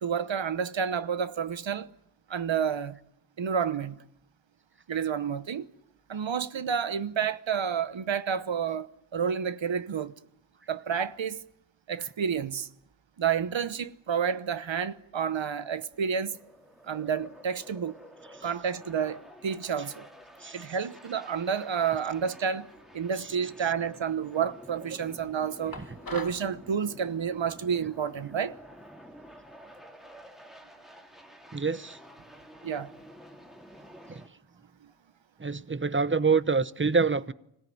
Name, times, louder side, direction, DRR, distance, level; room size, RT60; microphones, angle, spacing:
voice 1, 0.0-1.9 2.3-3.0 3.4-4.0 4.9-5.7 6.1-8.9 9.1-10.1 10.7-11.4 11.9-12.7 13.2-16.4 16.8-18.0 18.4-20.1 20.5-22.7 22.9-25.8 26.1-28.5 32.6-32.9, right 7 dB, 90° right, 1.1 m, -30 dB
sound 1, 15.9-34.3, equal, ahead, 2.7 m, -50 dB
sound 2, 25.7-26.5, left 3 dB, 50° left, 2.4 m, -40 dB
voice 2, 31.5-32.0 34.1-34.2 35.4-37.3, right 4 dB, 25° right, 0.9 m, -26 dB
25.5 x 17.5 x 9.3 m
wide cardioid pair, 60°, 44 cm